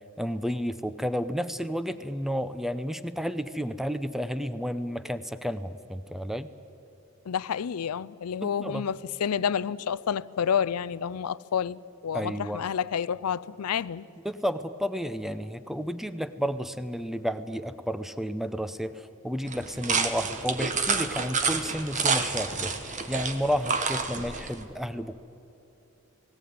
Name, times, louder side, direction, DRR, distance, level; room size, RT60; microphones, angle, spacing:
voice 1, 0.2-6.5 8.4-8.9 12.1-12.7 14.2-25.2, equal, ahead, 0.6 m, -31 dB
voice 2, 7.3-14.1, left 7 dB, 85° left, 0.5 m, -29 dB
sound 1, 19.5-24.6, right 5 dB, 35° right, 1.3 m, -29 dB
18.0 x 18.0 x 9.5 m
head